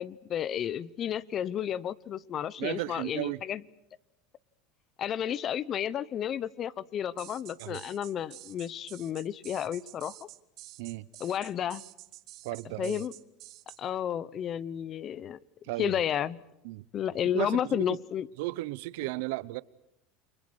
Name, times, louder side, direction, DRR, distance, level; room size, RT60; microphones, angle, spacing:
voice 1, 0.0-3.6 5.0-10.2 11.2-11.8 12.8-13.1 13.8-15.4 15.8-16.4 16.9-18.3, left 9 dB, 40° left, 0.9 m, -32 dB
voice 2, 2.6-3.4 7.6-7.8 10.8-11.1 12.4-13.0 15.7-16.0 16.6-16.9 17.3-18.0 18.4-19.6, right 20 dB, 75° right, 0.9 m, -34 dB
sound 1, 7.2-13.8, right 17 dB, 55° right, 1.5 m, -49 dB
30.0 x 24.0 x 6.5 m
supercardioid pair, 120°, 0 cm